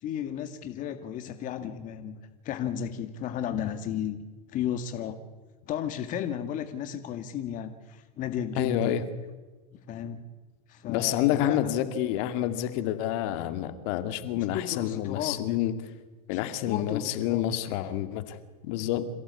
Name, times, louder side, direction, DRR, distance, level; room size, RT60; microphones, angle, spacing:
voice 1, 0.0-2.2 2.4-4.2 4.5-5.2 5.6-8.9 9.9-10.2 10.7-11.6 14.3-15.6 16.3-16.4 16.7-17.5, left 9 dB, 45° left, 8 dB, 1.9 m, -34 dB
voice 2, 8.6-9.0 10.9-15.7 16.3-18.4 18.6-19.0, left 12 dB, 60° left, 9 dB, 2.3 m, -28 dB
27.0 x 16.5 x 8.4 m, 1.3 s
hypercardioid pair, 110°, 19 cm